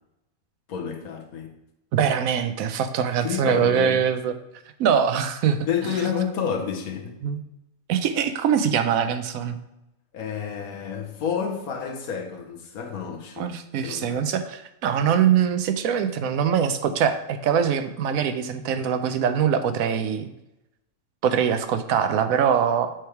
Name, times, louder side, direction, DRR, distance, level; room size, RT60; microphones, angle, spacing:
voice 1, 0.7-1.6 3.0-4.0 5.6-7.2 10.1-13.5 13.8-14.3, left 7 dB, 85° left, 1.4 m, -30 dB
voice 2, 1.9-4.3 4.8-5.7 7.2-7.4 7.9-9.6 13.4-20.3 21.2-22.9, right 8 dB, 80° right, 1.0 m, -23 dB
7.8 x 3.4 x 4.5 m
omnidirectional pair, 1.5 m